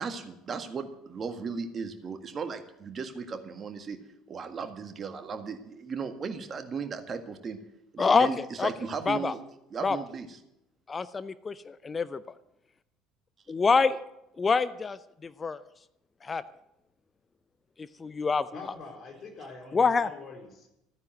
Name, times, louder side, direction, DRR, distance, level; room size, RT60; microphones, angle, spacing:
voice 1, 0.0-4.0 4.3-7.6 7.9-9.4 9.7-10.4, right 5 dB, 35° right, 7 dB, 1.8 m, -36 dB
voice 2, 10.9-12.2 13.5-14.0 14.4-15.6 16.2-16.4 18.0-18.5 19.7-20.1, left 4 dB, 25° left, 15 dB, 0.6 m, -26 dB
voice 3, 18.5-20.7, left 3 dB, 40° left, 2 dB, 4.2 m, -45 dB
13.5 x 9.5 x 7.9 m, 0.84 s
figure-of-eight pair, 60°, 0 cm